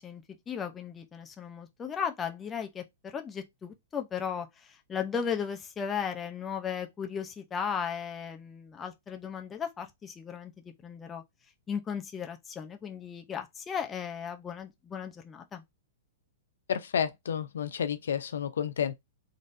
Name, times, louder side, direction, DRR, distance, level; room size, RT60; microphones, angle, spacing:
voice 1, 0.0-10.5 10.8-11.2 11.7-15.6, left 7 dB, 15° left, 0.6 m, -36 dB
voice 2, 16.7-18.9, left 8 dB, 85° left, 0.5 m, -30 dB
4.0 x 3.2 x 2.6 m
hypercardioid pair, 150°, 0 cm